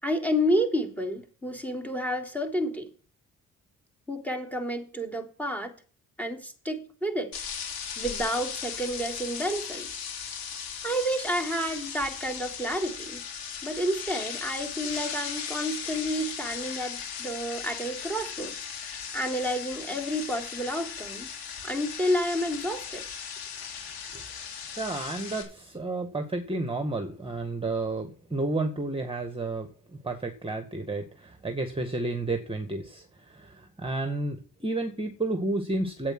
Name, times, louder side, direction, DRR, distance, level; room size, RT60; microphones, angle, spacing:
voice 1, 0.0-2.9 4.1-5.7 6.2-7.4 8.0-10.0 10.8-13.2 13.6-21.3 21.6-23.1, equal, 5° left, 3.4 m, -30 dB
sound 1, 7.3-25.4, left 7 dB, 80° left, 3.3 m, -37 dB
voice 2, 24.8-29.7 30.0-36.1, right 2 dB, 15° right, 1.9 m, -31 dB
8.8 x 8.8 x 6.1 m
supercardioid pair, 60°, 36 cm